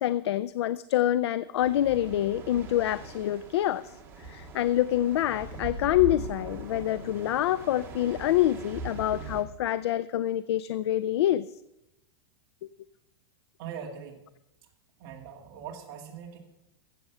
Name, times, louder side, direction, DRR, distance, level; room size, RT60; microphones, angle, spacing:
voice 1, 0.0-3.8 4.3-11.5, left 13 dB, 75° left, 16 dB, 0.4 m, -26 dB
sound 1, 1.6-9.4, right 3 dB, 15° right, 1.8 m, -41 dB
voice 2, 13.6-14.2 15.0-16.4, right 7 dB, 35° right, -1 dB, 2.3 m, -41 dB
15.0 x 7.7 x 5.6 m, 0.87 s
supercardioid pair, 170°, 14 cm